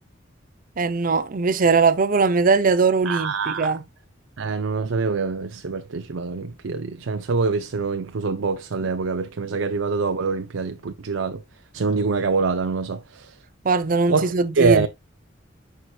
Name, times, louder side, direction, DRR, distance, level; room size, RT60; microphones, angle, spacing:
voice 1, 0.8-3.8 13.6-14.9, right 4 dB, 45° right, 0.6 m, -20 dB
voice 2, 3.1-3.8 4.4-11.4 11.7-13.3 14.1-14.9, right 4 dB, 90° right, 0.6 m, -25 dB
11.0 x 4.6 x 2.2 m
head